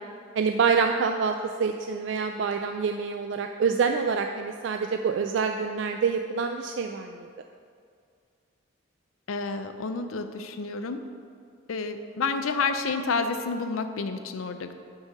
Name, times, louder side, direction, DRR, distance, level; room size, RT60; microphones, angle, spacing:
voice 1, 0.4-1.3 1.6-7.3, right 5 dB, 60° right, 5 dB, 0.3 m, -26 dB
voice 2, 9.3-11.0 11.7-14.7, left 4 dB, 80° left, 8 dB, 0.5 m, -29 dB
6.1 x 5.5 x 6.5 m, 2.2 s
head